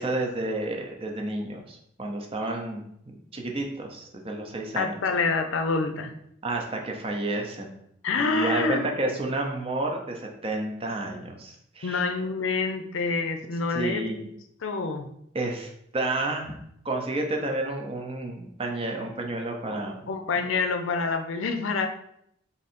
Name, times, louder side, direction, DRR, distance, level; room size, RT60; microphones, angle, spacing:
voice 1, 0.0-5.0 6.4-7.7 8.2-12.0 13.7-14.2 15.3-16.5 16.8-20.1, right 2 dB, 30° right, 2 dB, 0.6 m, -31 dB
voice 2, 4.8-6.1 8.0-8.9 11.8-14.3 14.6-15.1 19.7-19.8 20.1-21.9, left 4 dB, 80° left, 6 dB, 0.5 m, -27 dB
3.8 x 2.7 x 4.2 m, 0.74 s
head